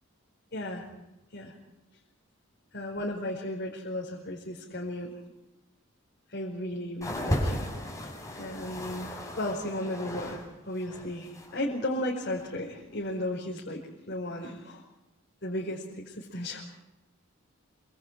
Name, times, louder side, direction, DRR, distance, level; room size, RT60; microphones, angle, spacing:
voice 1, 0.5-0.9 1.3-1.5 2.7-5.1 6.3-7.7 8.3-14.8 15.4-16.6, left 1 dB, 55° left, -3 dB, 4.9 m, -35 dB
sound 1, 7.0-10.4 10.7-11.6 12.3-12.4, left 1 dB, 15° left, 6.3 m, -35 dB
27.5 x 26.0 x 4.8 m, 0.96 s
head